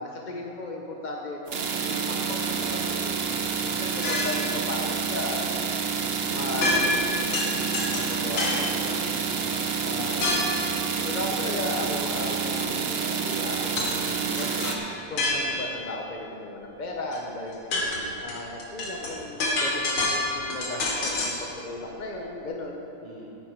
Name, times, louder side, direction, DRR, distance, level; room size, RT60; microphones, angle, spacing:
voice 1, 0.0-3.2 3.6-5.5 6.3-9.0 9.8-10.5 11.1-22.8, left 2 dB, 45° left, 0 dB, 0.5 m, -36 dB
sound 1, 1.5-14.7, right 6 dB, 65° right, 0.6 m, -28 dB
sound 2, 4.0-4.5 6.6-7.1 7.3-8.7 10.2-10.6 13.8-14.0 14.3-15.8 17.1-17.2 17.5-21.4, left 2 dB, 85° left, 2.5 m, -27 dB
voice 2, 8.7-10.8 17.8-18.2 23.0-23.2, right 1 dB, 15° left, -8 dB, 3.5 m, -46 dB
16.0 x 9.1 x 4.6 m, 2.9 s
omnidirectional pair, 2.2 m